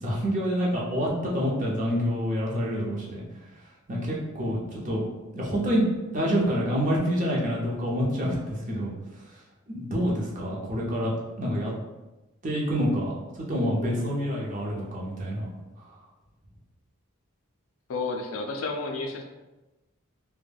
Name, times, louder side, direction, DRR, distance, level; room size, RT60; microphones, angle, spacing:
voice 1, 0.0-3.2 3.9-5.0 5.3-8.9 9.7-11.1 11.4-11.7 12.4-15.5, equal, 35° right, -4 dB, 0.6 m, -27 dB
voice 2, 17.9-19.2, left 3 dB, 70° left, 3 dB, 0.4 m, -31 dB
2.2 x 2.1 x 3.3 m, 1.1 s
head